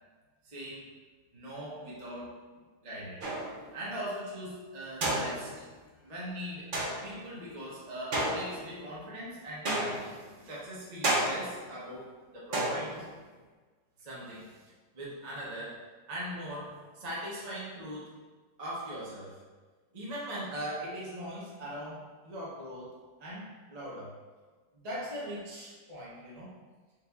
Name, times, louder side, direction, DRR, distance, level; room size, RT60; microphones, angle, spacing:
voice 1, 0.4-0.9 1.3-2.4 2.8-3.2 3.7-5.5 6.0-6.7 7.0-13.1 14.0-14.6 14.9-15.8 16.1-18.1 18.6-19.4 19.9-22.9 23.2-24.1 24.7-26.5, equal, 35° right, -7 dB, 0.7 m, -40 dB
sound 1, 3.2-3.7 5.0-5.7 6.7-7.2 8.1-8.9 9.6-10.3 11.0-11.7 12.5-13.2, right 1 dB, 75° right, 0.4 m, -31 dB
4.6 x 4.0 x 2.4 m, 1.4 s
omnidirectional pair, 2.0 m